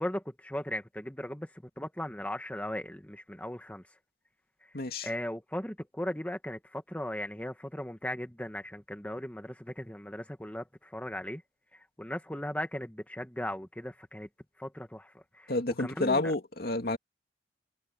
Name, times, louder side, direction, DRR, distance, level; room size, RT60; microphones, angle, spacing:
voice 1, 0.0-1.5 1.8-3.8 4.6-4.7 5.0-11.4 11.7-14.3 14.6-15.5 15.8-16.3, left 1 dB, 10° left, 1.3 m, -37 dB
voice 2, 4.7-5.1 15.5-17.0, left 2 dB, 60° left, 2.5 m, -29 dB
head